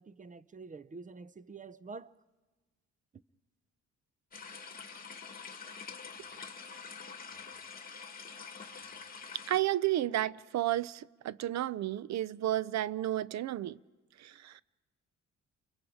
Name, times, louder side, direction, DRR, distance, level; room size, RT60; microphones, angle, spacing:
voice 1, 0.0-2.1 3.1-3.2, right 4 dB, 25° right, 0.7 m, -47 dB
sound 1, 4.3-9.6, left 5 dB, 30° left, 2.1 m, -46 dB
voice 2, 9.5-13.8 14.2-14.6, right 13 dB, 65° right, 0.6 m, -32 dB
30.0 x 23.0 x 5.0 m
cardioid pair, 90°, 30 cm